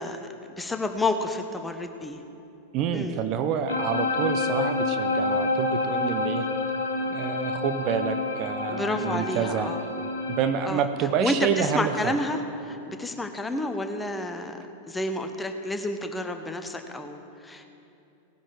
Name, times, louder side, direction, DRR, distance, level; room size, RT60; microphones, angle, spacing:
voice 1, 0.0-2.2 2.9-3.2 8.7-9.8 10.6-10.8 11.2-14.6 14.9-17.7, left 2 dB, 10° left, 7 dB, 1.0 m, -30 dB
voice 2, 2.7-6.4 7.1-9.7 10.3-12.1, right 8 dB, 40° right, 8 dB, 0.7 m, -28 dB
sound 1, 3.7-10.5, left 3 dB, 75° left, 1.2 m, -28 dB
17.5 x 10.0 x 4.8 m, 2.7 s
figure-of-eight pair, 90°, 0 cm